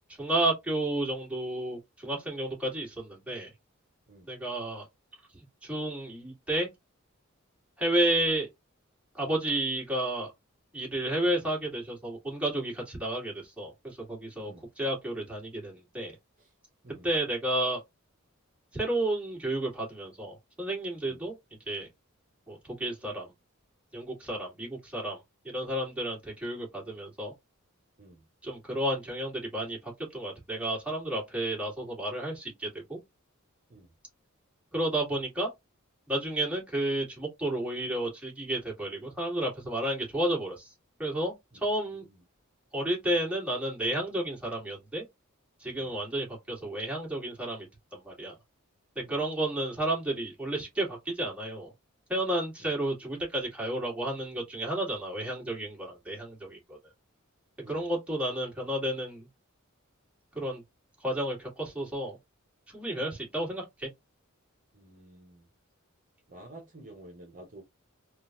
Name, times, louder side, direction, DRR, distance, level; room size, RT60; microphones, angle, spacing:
voice 1, 0.2-3.5 4.3-4.9 5.6-6.7 7.8-8.5 9.1-10.3 10.7-16.1 17.0-17.8 18.7-21.4 21.7-21.9 22.5-23.3 23.9-25.2 25.4-27.3 28.4-33.0 34.7-35.5 36.1-40.7 41.0-42.0 42.7-45.0 45.6-47.7 47.9-48.3 49.1-51.7 52.1-56.8 57.7-59.2 60.4-60.6 61.0-62.2 62.7-63.9, right 1 dB, 5° right, 2.0 m, -31 dB
voice 2, 64.7-65.5 66.3-67.6, right 1 dB, 40° right, 0.9 m, -50 dB
3.8 x 2.4 x 2.5 m
head